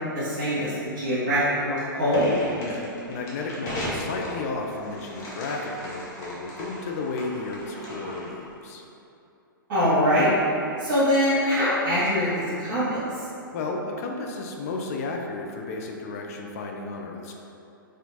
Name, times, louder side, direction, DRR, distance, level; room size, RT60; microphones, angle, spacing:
voice 1, 0.1-2.3 9.7-10.3 10.8-13.0, equal, 40° right, -12 dB, 1.4 m, -23 dB
sound 1, 2.1-8.5, left 1 dB, 25° left, 0.8 m, -37 dB
voice 2, 2.6-8.8 13.5-17.3, left 3 dB, 45° left, 1 dB, 0.4 m, -33 dB
4.2 x 2.5 x 2.8 m, 2.7 s
figure-of-eight pair, 115°, 12 cm